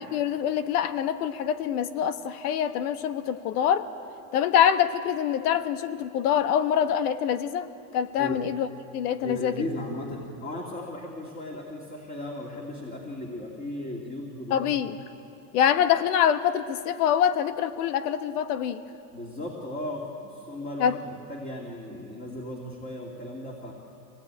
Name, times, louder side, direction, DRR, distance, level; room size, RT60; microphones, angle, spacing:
voice 1, 0.1-3.9 4.3-7.7 7.9-8.7 8.9-9.5 14.5-15.0 15.5-18.8 20.8-20.9, left 9 dB, 75° left, 10 dB, 1.4 m, -25 dB
voice 2, 9.2-14.9 19.1-23.7, left 1 dB, 20° left, -1 dB, 2.5 m, -36 dB
24.5 x 18.0 x 8.9 m, 2.7 s
supercardioid pair, 140°, 46 cm